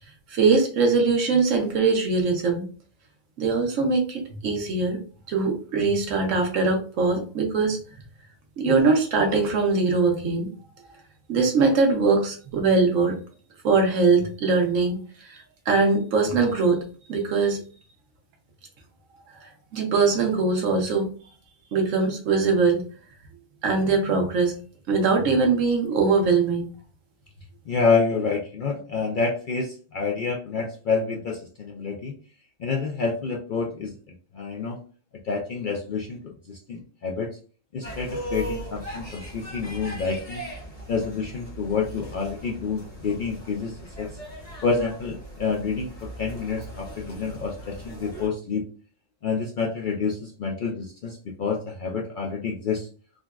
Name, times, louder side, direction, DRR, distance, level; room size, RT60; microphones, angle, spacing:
voice 1, 0.3-2.6 3.4-5.0 5.3-7.8 8.6-10.5 11.3-13.2 13.6-15.4 15.7-16.8 17.1-17.6 19.4-21.1 21.7-22.9 23.6-24.5 24.9-26.7, right 4 dB, 85° right, 3 dB, 1.2 m, -22 dB
voice 2, 27.7-32.1 32.6-34.8 35.2-37.4 37.7-40.4 40.9-44.1 44.6-48.7 49.2-52.9, left 4 dB, 65° left, -1 dB, 0.5 m, -28 dB
sound 1, 37.8-48.3, right 1 dB, 30° left, 1.0 m, -39 dB
3.7 x 2.2 x 2.3 m, 0.40 s
omnidirectional pair, 1.3 m